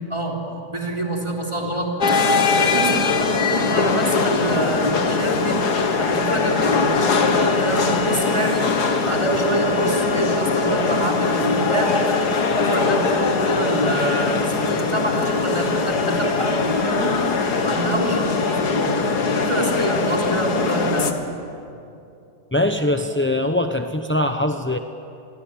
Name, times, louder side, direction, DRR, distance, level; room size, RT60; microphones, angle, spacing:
voice 1, 0.1-0.4 0.7-1.9 2.6-5.6 6.0-8.7 9.0-12.0 12.6-17.1 17.6-21.1, right 1 dB, 15° right, -1 dB, 3.6 m, -25 dB
sound 1, 2.0-21.1, left 4 dB, 75° left, 2.2 m, -21 dB
voice 2, 22.5-24.8, left 1 dB, 15° left, 6 dB, 0.5 m, -22 dB
27.5 x 21.5 x 8.9 m, 2.6 s
omnidirectional pair, 1.8 m